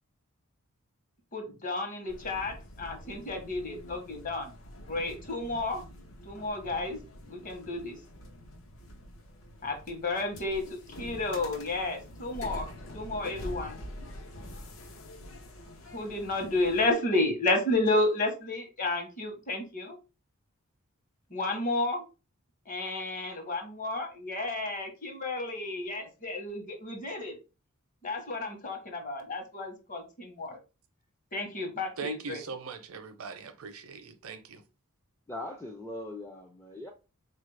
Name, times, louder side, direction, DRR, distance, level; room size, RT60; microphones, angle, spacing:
voice 1, 1.3-4.5 4.9-5.8 6.2-7.0 7.3-8.0 9.6-10.6 11.0-13.8 15.9-20.0 21.3-22.0 22.7-27.4 28.0-30.6 31.3-32.4, left 2 dB, 40° left, 1.0 m, -31 dB
sound 1, 2.1-16.9, left 1 dB, 70° left, 0.7 m, -46 dB
voice 2, 32.0-34.6, right 5 dB, 70° right, 0.6 m, -40 dB
voice 3, 35.3-36.9, left 2 dB, 10° left, 0.4 m, -40 dB
4.1 x 2.4 x 3.2 m
head